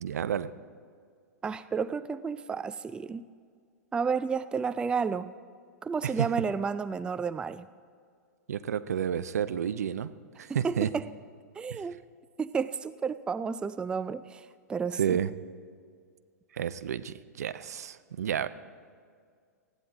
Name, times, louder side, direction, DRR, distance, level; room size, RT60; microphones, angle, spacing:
voice 1, 0.0-0.5 6.0-6.3 8.5-10.1 10.4-10.9 11.7-11.8 15.0-15.3 16.5-18.5, right 8 dB, 70° right, 14 dB, 0.6 m, -30 dB
voice 2, 1.4-3.2 3.9-5.3 5.8-7.7 10.5-11.1 11.6-12.0 12.4-15.2, right 5 dB, 10° right, 15 dB, 0.3 m, -31 dB
20.0 x 15.5 x 3.9 m, 2.1 s
figure-of-eight pair, 105°, 9 cm